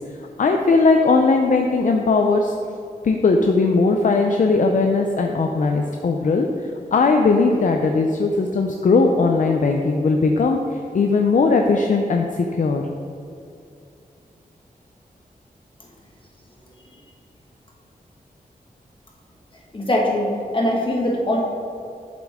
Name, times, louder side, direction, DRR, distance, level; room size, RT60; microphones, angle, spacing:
voice 1, 0.4-2.5 3.0-6.5 6.9-10.6 10.9-12.8, left 3 dB, 55° left, 3 dB, 0.5 m, -18 dB
voice 2, 19.7-21.4, left 1 dB, 35° left, -2 dB, 1.7 m, -21 dB
8.4 x 7.6 x 3.6 m, 2.5 s
wide cardioid pair, 125°, 15 cm